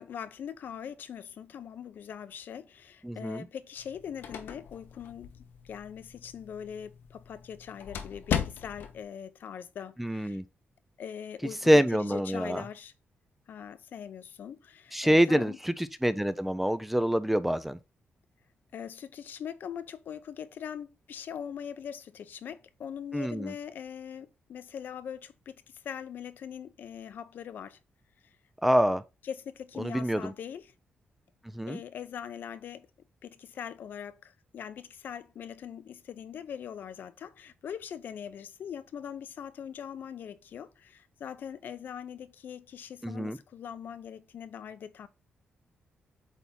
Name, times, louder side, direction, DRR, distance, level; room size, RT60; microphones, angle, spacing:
voice 1, 0.0-10.4 11.0-12.9 13.5-15.6 18.7-27.8 29.2-30.7 31.7-32.9 33.2-45.1, left 8 dB, 65° left, 0.7 m, -42 dB
voice 2, 3.0-3.4 10.0-10.4 11.7-12.6 14.9-17.8 23.1-23.5 28.6-29.0 29.8-30.3 31.6-31.8 43.0-43.4, equal, 5° right, 0.4 m, -26 dB
sound 1, 3.8-9.0, left 8 dB, 85° left, 1.0 m, -38 dB
8.2 x 3.5 x 4.1 m
wide cardioid pair, 140°, 4 cm